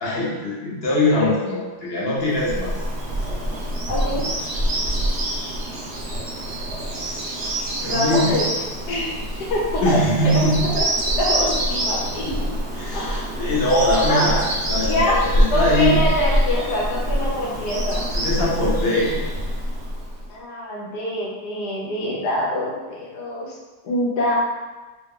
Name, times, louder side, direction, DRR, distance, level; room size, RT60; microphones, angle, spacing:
voice 1, 0.0-2.7 7.8-8.4 9.8-10.7 12.7-16.1 18.1-19.2, left 1 dB, 50° left, -5 dB, 0.9 m, -22 dB
Bird vocalization bird call bird song, 2.3-20.3, equal, 50° right, 0.8 m, -25 dB
voice 2, 3.9-4.2 7.8-8.5 8.9-9.1 9.5-10.0 10.2-10.3 10.7-12.3 12.9-13.3 14.1-14.2 14.8-18.0 20.3-23.5 23.8-24.3, left 1 dB, 85° left, -4 dB, 1.4 m, -25 dB
3.1 x 2.4 x 3.6 m, 1.2 s
omnidirectional pair, 1.7 m